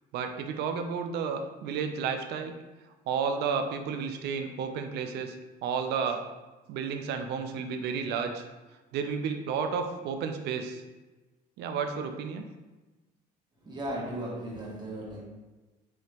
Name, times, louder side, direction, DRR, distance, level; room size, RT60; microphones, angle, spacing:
voice 1, 0.1-2.5 3.1-5.4 5.6-6.3 6.7-8.4 8.9-10.8 11.6-12.5, right 6 dB, 75° right, 6 dB, 0.5 m, -32 dB
voice 2, 13.6-15.2, right 1 dB, 25° right, -4 dB, 1.4 m, -36 dB
4.9 x 2.9 x 2.9 m, 1.1 s
cardioid pair, 110°, 17 cm